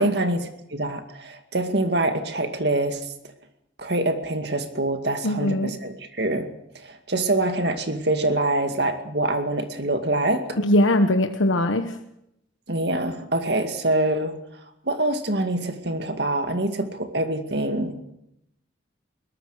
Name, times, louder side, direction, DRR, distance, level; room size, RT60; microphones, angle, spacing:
voice 1, 0.0-3.1 3.8-6.5 6.7-10.6 12.7-14.3 14.9-18.0, right 2 dB, 55° right, 7 dB, 2.3 m, -25 dB
voice 2, 5.2-5.7 10.6-11.9, left 1 dB, 85° left, 6 dB, 1.3 m, -21 dB
22.5 x 19.0 x 6.6 m, 0.80 s
head